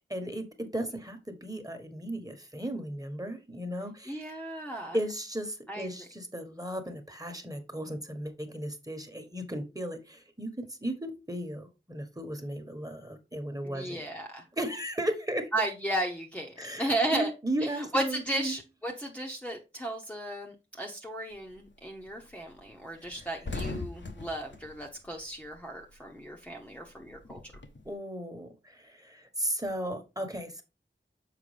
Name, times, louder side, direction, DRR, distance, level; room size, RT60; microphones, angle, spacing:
voice 1, 0.1-4.3 4.9-14.0 14.6-15.5 16.6-18.5 23.0-23.1 27.8-30.6, right 1 dB, 15° right, 6 dB, 1.4 m, -35 dB
voice 2, 4.1-5.0 5.7-5.9 13.6-14.4 15.5-17.3 17.6-27.4, right 1 dB, 5° left, -1 dB, 0.9 m, -34 dB
sound 1, 21.3-21.7 22.1-22.2 22.5-22.6 22.9-25.9 26.2-27.9, left 3 dB, 65° left, 0.9 m, -40 dB
6.8 x 4.8 x 3.3 m, 0.28 s
wide cardioid pair, 50°, 20 cm